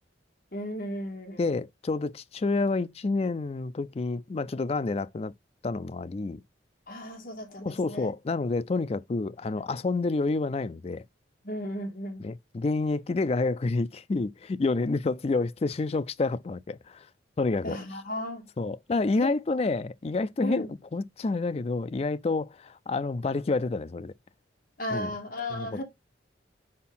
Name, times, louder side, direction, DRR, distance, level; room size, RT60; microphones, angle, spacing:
voice 1, 0.5-1.6 6.9-8.1 9.5-9.6 11.4-12.2 17.6-18.5 19.2-19.6 20.4-20.7 24.8-25.8, left 1 dB, 50° left, 2.0 m, -35 dB
voice 2, 1.4-5.3 5.6-6.4 7.6-11.0 12.2-17.0 17.4-17.8 18.6-20.7 20.9-24.1 24.9-25.1 25.5-25.7, left 3 dB, 30° left, 0.3 m, -29 dB
4.6 x 4.4 x 5.6 m
head